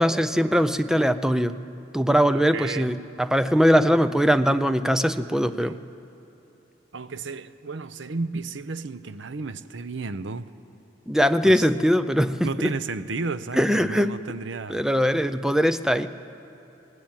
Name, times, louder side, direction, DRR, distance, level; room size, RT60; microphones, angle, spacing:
voice 1, 0.0-1.6 1.9-5.8 11.1-12.7 13.5-14.1 14.7-16.1, equal, 5° right, 11 dB, 0.5 m, -21 dB
voice 2, 2.3-2.9 5.6-5.8 6.9-10.5 11.4-11.7 12.4-14.8, right 4 dB, 70° right, 13 dB, 0.7 m, -33 dB
20.5 x 18.0 x 9.0 m, 3.0 s
head